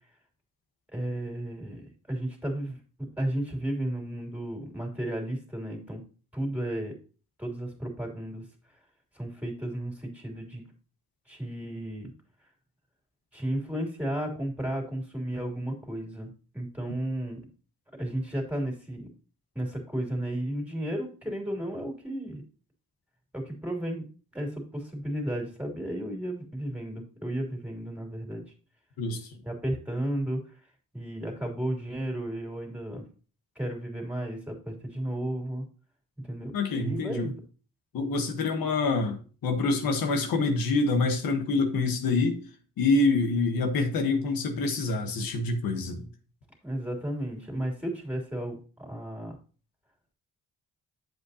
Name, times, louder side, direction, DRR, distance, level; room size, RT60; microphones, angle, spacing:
voice 1, 0.9-2.8 3.2-6.0 6.3-6.9 7.4-8.4 9.1-10.6 11.3-12.1 13.3-17.4 18.0-19.1 19.5-22.4 23.3-24.0 24.3-28.4 29.4-30.4 30.9-33.0 33.5-35.6 36.2-36.5 36.8-37.3 46.6-49.3, right 1 dB, 5° right, 3.0 m, -33 dB
voice 2, 29.0-29.3 36.5-37.3 37.9-42.4 42.8-46.1, left 3 dB, 90° left, 1.3 m, -26 dB
8.1 x 7.6 x 2.8 m
cardioid pair, 95°, 34 cm